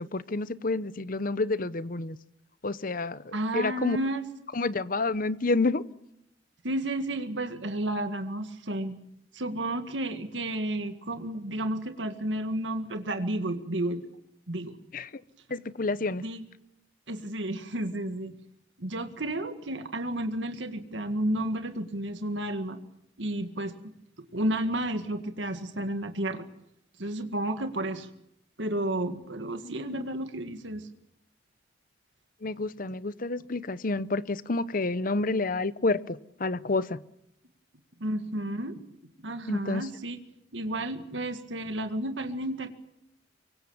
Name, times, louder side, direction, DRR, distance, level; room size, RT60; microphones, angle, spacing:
voice 1, 0.0-2.2 2.6-4.0 4.5-5.8 14.9-15.1 15.5-16.2 29.6-30.0 32.4-37.0 39.5-39.8, left 3 dB, 50° left, 16 dB, 0.9 m, -29 dB
voice 2, 3.3-4.3 6.6-9.0 9.3-14.1 14.5-14.7 16.2-16.4 17.1-18.3 18.8-22.8 23.2-23.8 24.3-26.5 27.0-28.1 28.6-30.9 38.0-38.8 39.2-40.2 40.5-42.7, right 1 dB, 85° right, 7 dB, 1.9 m, -32 dB
24.5 x 24.5 x 7.2 m, 0.79 s
head